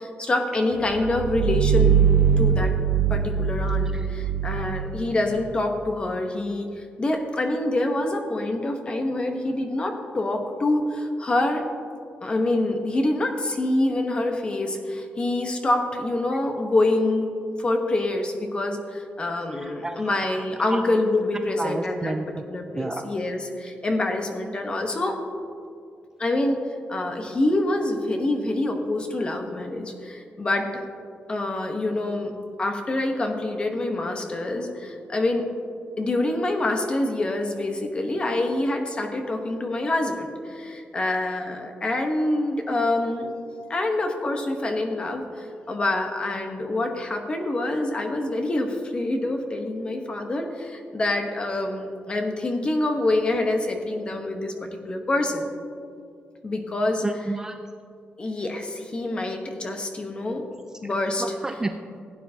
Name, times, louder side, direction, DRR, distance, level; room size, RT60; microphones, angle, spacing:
voice 1, 0.0-2.7 3.1-11.6 12.2-17.3 17.6-25.2 26.2-26.6 26.9-30.8 31.3-32.3 32.6-35.4 36.0-43.3 43.7-55.5 56.4-57.0 58.2-60.4 60.8-61.2, left 2 dB, 25° left, 4 dB, 1.0 m, -26 dB
sound 1, 0.8-5.5, right 7 dB, 75° right, 0.6 m, -22 dB
voice 2, 19.3-20.8 21.6-22.4 22.7-23.1 57.0-57.6 61.2-61.7, right 2 dB, 15° right, 6 dB, 0.3 m, -31 dB
16.0 x 9.2 x 2.8 m, 2.4 s
wide cardioid pair, 160°, 4 cm